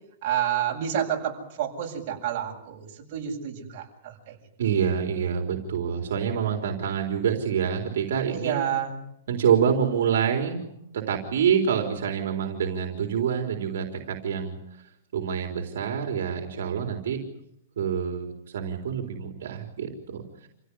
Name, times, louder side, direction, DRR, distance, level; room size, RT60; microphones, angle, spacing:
voice 1, 0.2-4.4 8.3-9.0, right 9 dB, 45° right, 0 dB, 7.9 m, -29 dB
voice 2, 4.6-8.7 9.3-10.6 10.9-14.6 15.1-17.2 17.8-20.5, right 7 dB, 80° right, 3 dB, 3.8 m, -26 dB
28.5 x 16.5 x 9.9 m, 0.79 s
hypercardioid pair, 155°, 0 cm